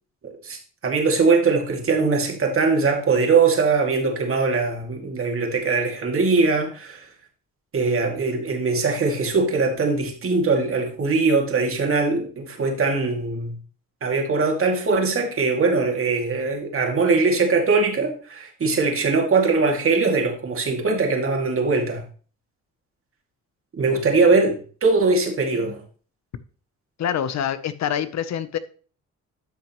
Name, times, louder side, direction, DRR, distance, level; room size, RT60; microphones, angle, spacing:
voice 1, 0.2-7.0 7.7-13.5 14.0-22.0 23.8-25.8, right 4 dB, 45° right, 2.4 m, -21 dB
voice 2, 27.0-28.6, left 9 dB, 60° left, 0.8 m, -25 dB
12.5 x 5.9 x 3.0 m
cardioid pair, 90°, 30 cm